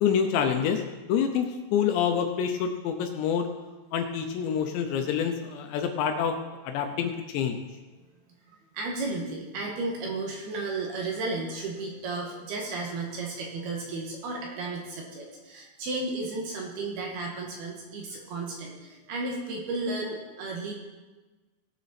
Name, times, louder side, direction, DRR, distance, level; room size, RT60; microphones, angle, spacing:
voice 1, 0.0-3.5 3.9-6.4 6.6-7.6, left 7 dB, 80° left, 5 dB, 2.8 m, -27 dB
voice 2, 8.5-20.7, right 3 dB, 65° right, -1 dB, 2.9 m, -33 dB
18.0 x 7.3 x 4.2 m, 1.2 s
omnidirectional pair, 5.5 m